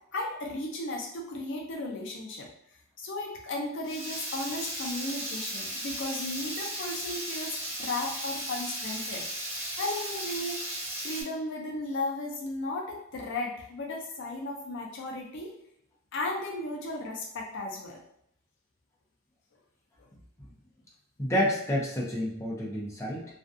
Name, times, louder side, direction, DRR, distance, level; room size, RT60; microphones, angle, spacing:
voice 1, 0.1-2.5 3.0-10.6 11.0-15.5 16.1-18.0, left 2 dB, 60° left, 0 dB, 0.5 m, -35 dB
Water tap faucet / Liquid, 3.8-11.2, right 1 dB, 35° right, 1.1 m, -36 dB
voice 2, 21.2-23.4, equal, 15° left, -4 dB, 0.5 m, -29 dB
2.5 x 2.2 x 2.5 m, 0.72 s
head